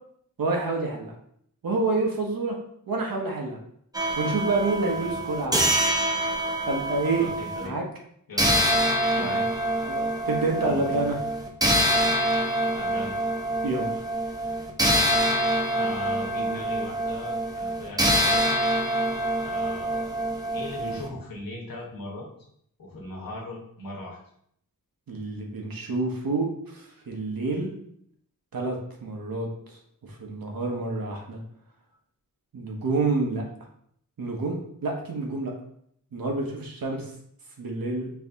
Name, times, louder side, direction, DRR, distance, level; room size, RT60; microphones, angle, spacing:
voice 1, 0.4-1.1 1.6-2.6 2.9-3.6 4.2-5.9 6.6-7.3 7.6-7.8 9.2-9.4 9.8-11.2 13.6-13.9 25.1-27.7 28.5-31.4 32.5-33.4 34.2-35.5 36.1-37.1 37.6-38.1, right 3 dB, 85° right, 1 dB, 1.0 m, -28 dB
sound 1, 3.9-7.7 8.4-21.1, right 1 dB, 10° right, 0.5 m, -25 dB
voice 2, 4.9-5.2 7.2-7.8 8.3-8.6 9.1-9.4 10.6-11.0 12.7-13.1 15.7-18.4 19.4-20.1 20.5-22.3 22.8-24.2, left 1 dB, 85° left, -2 dB, 1.2 m, -38 dB
4.6 x 2.7 x 3.4 m, 0.69 s
wide cardioid pair, 110°, 34 cm